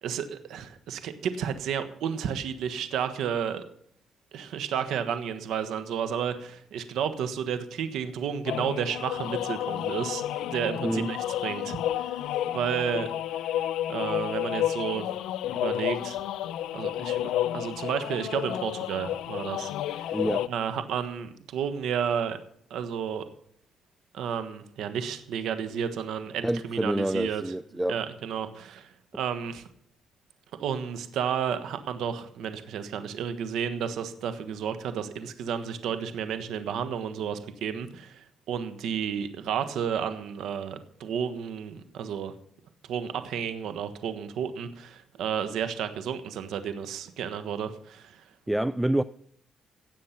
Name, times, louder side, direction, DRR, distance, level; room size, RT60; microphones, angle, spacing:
voice 1, 0.0-3.6 4.3-11.2 11.4-12.2 12.5-13.1 13.9-15.0 15.5-16.2 16.7-20.1 20.5-22.4 22.7-23.2 24.1-27.4 27.9-29.6 30.6-42.3 42.9-48.2, right 8 dB, 80° right, 1.3 m, -32 dB
sound 1, 8.5-20.5, left 12 dB, 85° left, 0.5 m, -31 dB
voice 2, 10.8-11.1 20.1-20.5 26.4-28.0 48.5-49.0, right 1 dB, 5° right, 0.4 m, -27 dB
17.0 x 7.5 x 5.8 m
cardioid pair, 90°, 0 cm